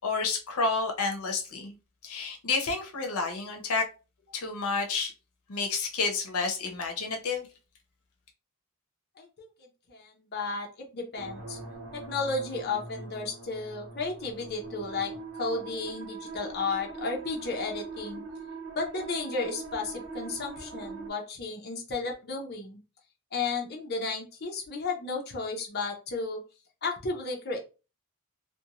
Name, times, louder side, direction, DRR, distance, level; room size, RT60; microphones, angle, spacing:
voice 1, 0.0-1.8 2.0-3.9 4.3-5.1 5.5-7.5, left 4 dB, 85° left, 0.7 m, -30 dB
voice 2, 9.2-9.5 9.9-10.7 10.9-11.6 11.9-18.2 18.8-22.8 23.3-26.4 26.8-27.6, left 3 dB, 50° left, 0.7 m, -33 dB
sound 1, 11.1-21.1, right 3 dB, 75° right, 1.1 m, -42 dB
2.6 x 2.2 x 2.8 m
head